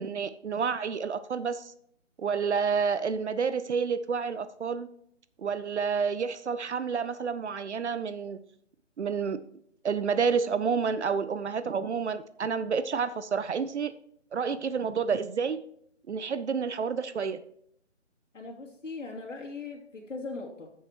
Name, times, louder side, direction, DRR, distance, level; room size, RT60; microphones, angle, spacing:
voice 1, 0.0-1.7 2.2-4.9 5.4-8.4 9.0-9.4 9.8-13.9 14.3-15.6 16.1-17.4, right 6 dB, 65° right, 13 dB, 0.7 m, -29 dB
voice 2, 18.3-20.7, left 3 dB, 80° left, -1 dB, 2.7 m, -39 dB
13.5 x 7.4 x 3.0 m, 0.70 s
hypercardioid pair, 160°, 37 cm